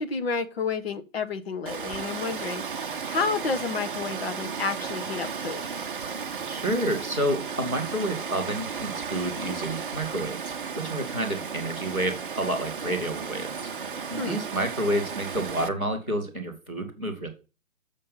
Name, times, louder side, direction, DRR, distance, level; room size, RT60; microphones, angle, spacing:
voice 1, 0.0-5.6 14.2-14.4, left 4 dB, 45° left, 8 dB, 1.2 m, -30 dB
Water, 1.7-15.7, right 6 dB, 40° right, 0.7 m, -34 dB
voice 2, 6.5-13.7 14.1-17.3, right 1 dB, 5° left, -9 dB, 0.6 m, -29 dB
7.2 x 6.6 x 5.6 m, 0.32 s
figure-of-eight pair, 145°, 41 cm